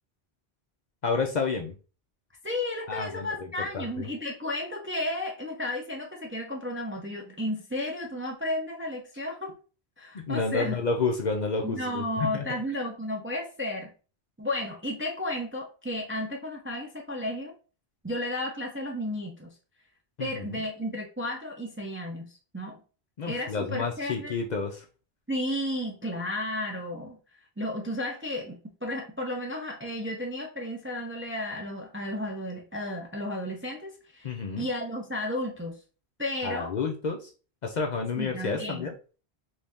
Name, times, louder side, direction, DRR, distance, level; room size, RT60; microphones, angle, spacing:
voice 1, 1.0-1.8 2.9-4.1 10.1-12.4 20.2-20.6 23.2-24.9 34.2-34.7 36.4-37.3 37.6-38.9, left 4 dB, 55° left, 3 dB, 0.6 m, -30 dB
voice 2, 2.4-9.5 10.0-10.8 11.6-13.9 14.4-17.5 18.0-19.5 20.2-22.8 23.3-24.3 25.3-27.2 27.6-35.8 36.2-36.7 38.2-38.8, left 1 dB, 20° right, 1 dB, 0.4 m, -33 dB
3.2 x 2.7 x 3.4 m, 0.36 s
omnidirectional pair, 1.1 m